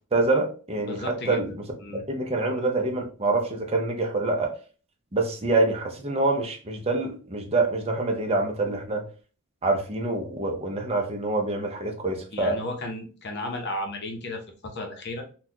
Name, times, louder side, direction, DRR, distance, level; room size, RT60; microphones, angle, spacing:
voice 1, 0.1-1.5 1.9-4.5 5.1-9.1 9.6-12.6, right 2 dB, 25° right, 2 dB, 0.6 m, -26 dB
voice 2, 0.8-1.4 1.8-2.0 12.3-15.3, left 1 dB, 50° left, 3 dB, 0.8 m, -34 dB
4.0 x 2.3 x 2.8 m, 0.37 s
head